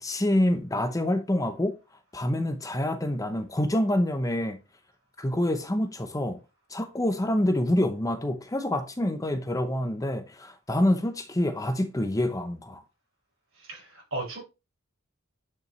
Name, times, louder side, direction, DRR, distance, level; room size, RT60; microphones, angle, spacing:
voice 1, 0.0-1.8 2.1-4.6 5.2-6.4 6.7-12.8, left 1 dB, 15° left, 0.8 m, -26 dB
voice 2, 13.6-14.4, right 2 dB, 70° right, 5.4 m, -36 dB
9.2 x 5.6 x 3.2 m
head